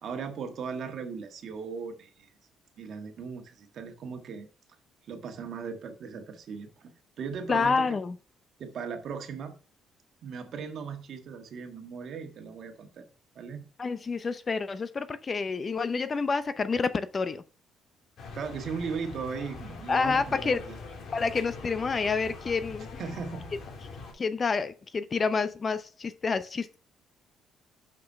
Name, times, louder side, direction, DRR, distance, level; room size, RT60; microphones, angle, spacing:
voice 1, 0.0-2.3 2.8-4.5 5.1-7.9 8.6-9.5 10.2-13.1 13.3-13.6 18.3-20.8 23.0-23.5, right 5 dB, 60° right, 1.5 m, -38 dB
voice 2, 7.5-8.2 13.8-17.4 19.9-20.6 21.1-23.0 24.1-26.8, left 4 dB, 35° left, 0.7 m, -28 dB
sound 1, 18.2-24.1, left 4 dB, 55° left, 2.8 m, -43 dB
6.1 x 5.6 x 5.5 m
cardioid pair, 95°, 0 cm